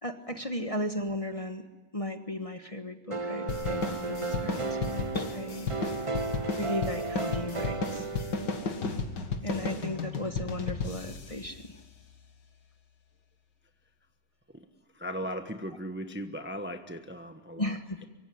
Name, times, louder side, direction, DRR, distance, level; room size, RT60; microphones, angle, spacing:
voice 1, 0.0-1.6 1.9-5.8 6.6-8.1 9.4-11.7 17.6-18.0, left 1 dB, 20° left, 6 dB, 1.3 m, -36 dB
sound 1, 3.1-9.0, right 3 dB, 30° right, 0.6 m, -34 dB
sound 2, 3.5-12.3, left 4 dB, 85° left, 2.6 m, -34 dB
voice 2, 14.9-18.1, equal, 10° right, 6 dB, 1.0 m, -38 dB
25.0 x 24.0 x 9.5 m, 1.1 s
omnidirectional pair, 1.9 m